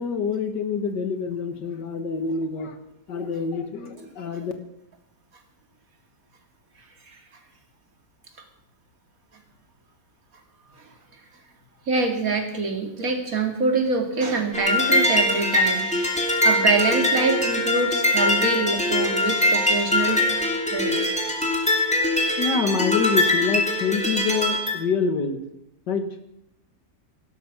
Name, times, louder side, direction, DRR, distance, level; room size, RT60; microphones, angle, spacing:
voice 1, 0.0-2.8 3.1-4.5 22.4-25.4 25.9-26.1, left 5 dB, 85° left, 8 dB, 2.2 m, -26 dB
voice 2, 11.9-21.0, right 3 dB, 55° right, 4 dB, 2.8 m, -25 dB
sound 1, 14.5-24.8, left 1 dB, 5° left, 2.8 m, -22 dB
17.5 x 12.0 x 6.1 m, 0.80 s
omnidirectional pair, 1.8 m